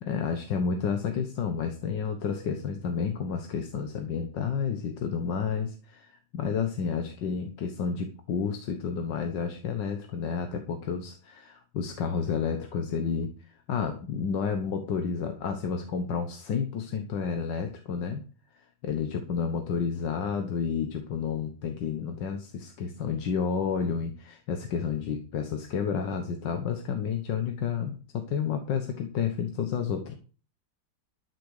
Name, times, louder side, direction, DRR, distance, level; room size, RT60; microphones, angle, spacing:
voice 1, 0.0-13.3 13.7-18.2 18.8-30.1, left 6 dB, 85° left, 6 dB, 1.9 m, -30 dB
13.0 x 6.8 x 6.5 m, 0.38 s
omnidirectional pair, 1.9 m